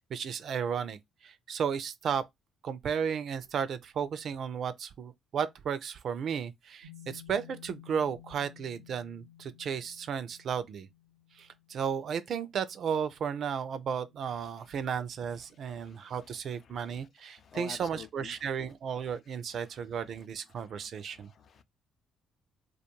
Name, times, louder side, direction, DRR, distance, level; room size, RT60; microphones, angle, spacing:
voice 1, 0.0-2.3 2.6-10.9 11.3-21.3, right 7 dB, 55° right, 0.4 m, -34 dB
sound 1, 6.8-16.3, left 11 dB, 85° left, 0.8 m, -56 dB
voice 2, 15.6-16.1 16.7-17.0 17.3-18.3 20.5-21.6, left 7 dB, 55° left, 0.3 m, -50 dB
2.3 x 2.3 x 2.8 m
hypercardioid pair, 50°, 0 cm